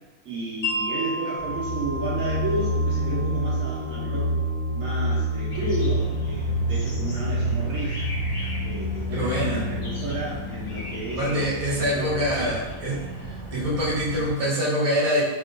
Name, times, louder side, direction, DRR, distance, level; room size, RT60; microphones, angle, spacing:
voice 1, 0.2-4.3 4.7-8.0 8.6-12.6, right 2 dB, 65° right, -6 dB, 1.1 m, -32 dB
Wind chime, 0.6-6.7, equal, 55° left, 1.3 m, -35 dB
sound 1, 1.4-9.1, equal, ahead, 1.1 m, -27 dB
sound 2, 5.5-14.3, equal, 30° left, 0.6 m, -32 dB
voice 2, 9.1-9.7 11.1-15.2, equal, 25° right, -7 dB, 0.9 m, -25 dB
3.7 x 2.7 x 2.5 m, 1.1 s
omnidirectional pair, 1.6 m